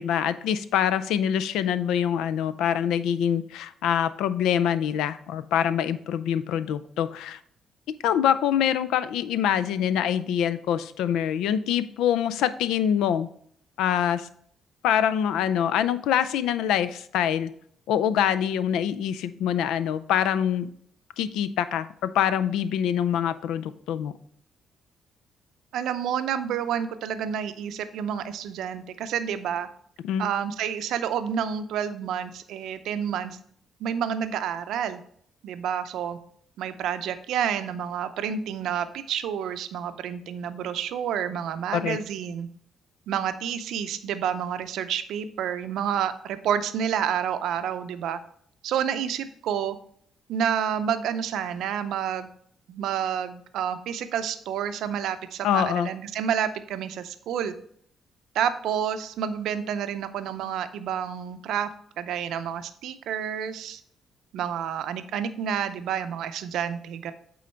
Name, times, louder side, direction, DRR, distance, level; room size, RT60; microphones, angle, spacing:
voice 1, 0.0-7.4 8.0-13.3 13.8-14.3 14.8-17.5 17.9-20.7 21.2-24.1 30.0-30.3 41.7-42.0 55.4-55.9, left 9 dB, 90° left, 14 dB, 0.4 m, -25 dB
voice 2, 25.7-29.7 30.2-33.4 33.8-35.0 35.4-36.2 36.6-42.5 43.1-48.2 48.6-49.8 50.3-52.3 52.7-57.5 58.3-61.7 62.0-63.8 64.3-67.1, right 8 dB, 80° right, 10 dB, 0.5 m, -29 dB
8.5 x 3.8 x 4.4 m, 0.63 s
cardioid pair, 90°, 0 cm